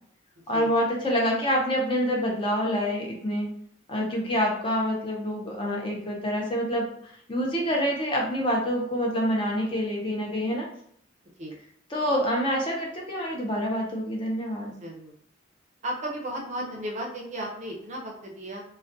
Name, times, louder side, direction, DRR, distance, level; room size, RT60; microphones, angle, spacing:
voice 1, 0.5-3.5 3.9-10.7 11.9-14.8, equal, 25° left, -1 dB, 0.5 m, -27 dB
voice 2, 14.8-15.1 15.8-18.6, right 1 dB, 35° right, 0 dB, 0.5 m, -34 dB
2.3 x 2.1 x 2.6 m, 0.67 s
head